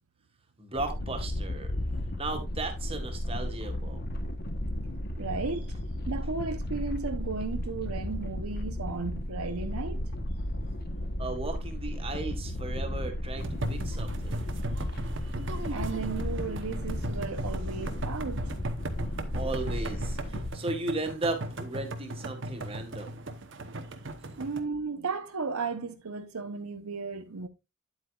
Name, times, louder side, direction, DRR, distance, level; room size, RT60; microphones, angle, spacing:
voice 1, 0.6-1.7 2.2-4.0 10.5-14.4 19.3-23.2 24.3-24.4, right 2 dB, 25° right, 1.7 m, -36 dB
sound 1, 0.8-20.5, left 1 dB, 45° left, 1.1 m, -34 dB
voice 2, 5.2-5.7 6.1-10.0 15.7-18.4 24.4-27.5, right 4 dB, 80° right, 0.9 m, -35 dB
sound 2, 13.4-24.6, right 1 dB, 55° right, 1.0 m, -38 dB
9.8 x 8.1 x 2.4 m
head